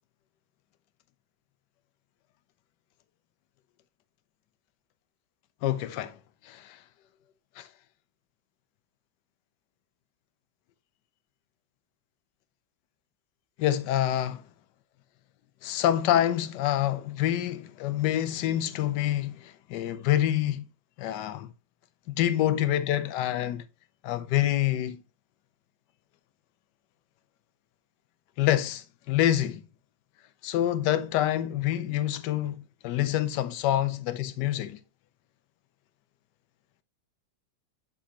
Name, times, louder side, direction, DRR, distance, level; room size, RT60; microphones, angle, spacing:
voice 1, 5.6-6.2 6.4-6.8 7.6-7.7 13.6-14.4 15.6-20.6 21.0-21.5 22.1-23.6 24.0-25.0 28.4-29.6 30.4-34.8, left 12 dB, 75° left, 1.2 m, -27 dB
7.3 x 5.5 x 2.8 m
omnidirectional pair, 1.9 m